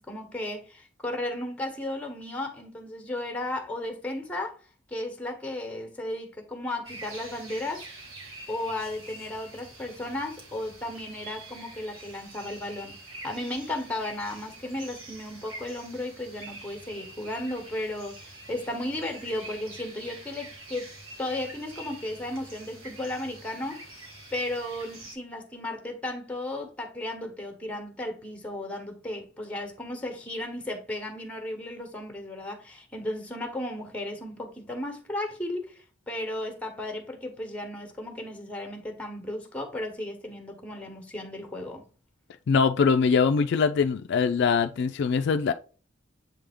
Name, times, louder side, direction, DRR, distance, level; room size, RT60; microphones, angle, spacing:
voice 1, 0.0-4.6 4.9-7.9 8.5-20.9 21.2-24.0 24.3-41.8, left 1 dB, 5° left, 1.1 m, -35 dB
sound 1, 6.8-25.1, right 2 dB, 90° right, 1.7 m, -46 dB
voice 2, 42.5-45.5, left 5 dB, 60° left, 0.3 m, -22 dB
7.5 x 3.5 x 3.6 m
head